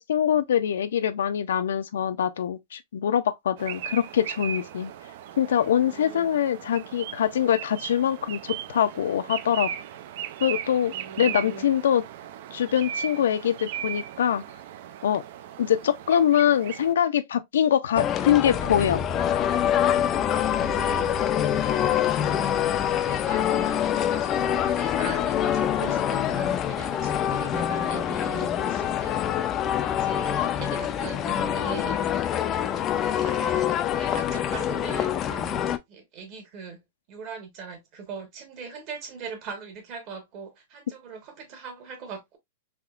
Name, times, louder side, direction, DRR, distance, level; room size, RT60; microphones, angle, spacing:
voice 1, 0.0-4.9 5.4-9.7 10.4-12.0 12.5-14.4 15.0-15.2 15.6-19.0, left 9 dB, 90° left, 0.5 m, -24 dB
Song-Thrush, 3.6-16.9, right 10 dB, 55° right, 0.3 m, -37 dB
voice 2, 5.8-6.3 10.7-11.7 20.1-21.2 22.1-22.6 23.1-29.5 29.8-32.0 32.6-42.4, right 5 dB, 35° right, 1.1 m, -41 dB
sound 1, 18.0-35.8, left 10 dB, 20° left, 0.3 m, -25 dB
sound 2, 18.5-26.3 26.8-27.6, left 1 dB, 5° left, 0.7 m, -41 dB
3.5 x 2.8 x 2.4 m
supercardioid pair, 160°, 0 cm